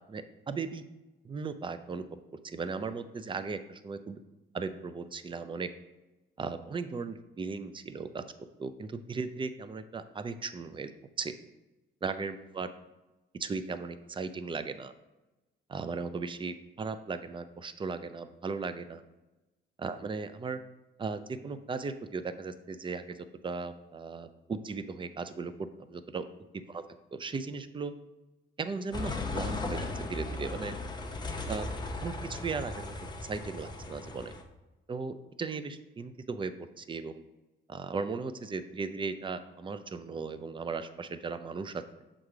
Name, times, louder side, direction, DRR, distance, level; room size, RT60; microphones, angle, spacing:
voice 1, 0.1-0.8 1.2-2.0 2.4-4.2 4.5-5.7 6.4-8.2 8.6-10.9 11.2-11.3 12.0-12.7 13.4-14.9 15.7-19.0 19.8-20.6 21.0-23.2 23.4-26.2 26.7-26.8 27.1-27.9 28.6-30.7 31.5-32.9 33.2-34.3 34.9-36.5 36.8-37.2 37.7-41.8, right 4 dB, 25° right, 11 dB, 0.5 m, -37 dB
sound 1, 28.9-34.4, left 2 dB, 20° left, 0.8 m, -37 dB
6.4 x 3.8 x 4.7 m, 1.1 s
cardioid pair, 90°, 20 cm